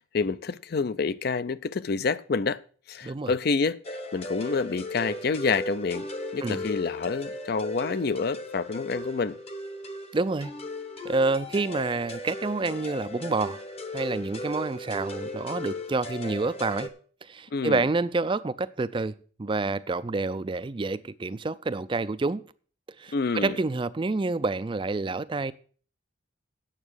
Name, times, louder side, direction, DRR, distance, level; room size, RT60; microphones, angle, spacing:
voice 1, 0.0-2.6 2.9-9.4 17.5-17.9 23.1-23.6, left 4 dB, 50° left, 0.4 m, -28 dB
sound 1, 3.8-16.9, left 1 dB, 30° left, 0.8 m, -37 dB
voice 2, 10.1-10.5 11.0-13.6 13.9-16.9 17.2-19.1 19.4-22.4 23.0-25.5, right 3 dB, 25° right, 0.4 m, -28 dB
9.0 x 7.3 x 6.3 m
head